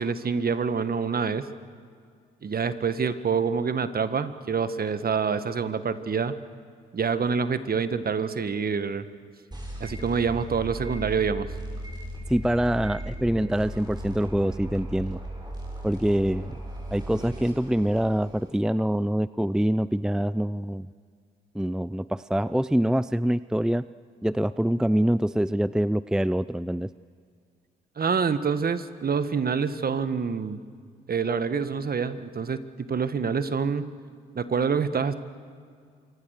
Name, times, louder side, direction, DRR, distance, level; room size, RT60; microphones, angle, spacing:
voice 1, 0.0-1.5 2.4-6.3 6.9-9.1 9.8-11.5 28.0-30.6 31.1-32.6 32.9-33.8 34.4-35.1, right 5 dB, 45° right, 12 dB, 1.7 m, -26 dB
sound 1, 9.5-18.5, right 1 dB, 20° right, 7.2 m, -37 dB
voice 2, 12.3-15.2 15.8-16.6 16.9-20.9 21.5-23.9 24.2-26.9, right 1 dB, 5° right, 16 dB, 0.5 m, -25 dB
26.5 x 24.5 x 6.7 m, 2.1 s
supercardioid pair, 55°, 21 cm